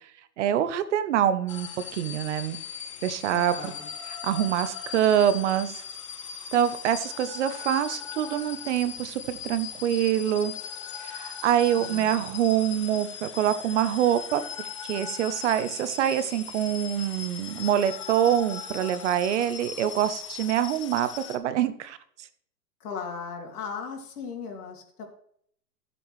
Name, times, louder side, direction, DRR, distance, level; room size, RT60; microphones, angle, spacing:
voice 1, 0.4-2.6 3.0-3.7 4.2-5.7 6.5-10.5 11.0-22.0, right 10 dB, 50° right, 13 dB, 0.8 m, -25 dB
sound 1, 1.5-21.4, left 7 dB, 25° left, 0.4 m, -39 dB
voice 2, 3.3-3.9 11.8-12.2 22.8-25.1, left 6 dB, 70° left, 1 dB, 2.9 m, -37 dB
13.5 x 7.8 x 3.2 m, 0.65 s
hypercardioid pair, 145°, 47 cm